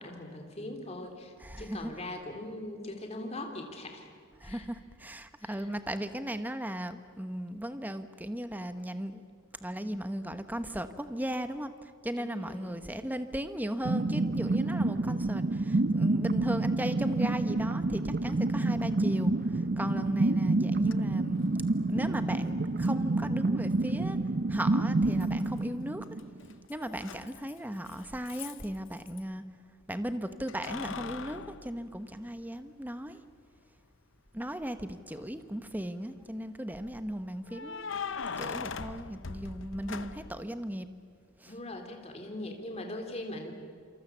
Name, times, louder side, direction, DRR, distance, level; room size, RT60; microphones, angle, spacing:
voice 1, 0.0-4.1 4.4-4.7 5.4-5.7 12.2-12.8 41.5-43.5, left 1 dB, 30° left, 3 dB, 3.4 m, -41 dB
voice 2, 1.4-1.9 4.4-9.2 9.6-21.5 21.9-24.2 24.5-26.1 26.7-29.4 29.9-33.2 34.3-40.9 41.4-41.5, equal, 10° right, 9 dB, 1.1 m, -36 dB
sound 1, 13.8-26.5, right 2 dB, 45° right, 0.7 m, -28 dB
Keys jangling, 20.9-21.0 22.9-23.0 25.2-25.7 26.0-29.2 30.5-32.6 33.1-33.2 35.0-35.5 37.5-40.4, left 5 dB, 60° left, 0.8 m, -40 dB
27.5 x 27.0 x 7.4 m, 2.2 s
head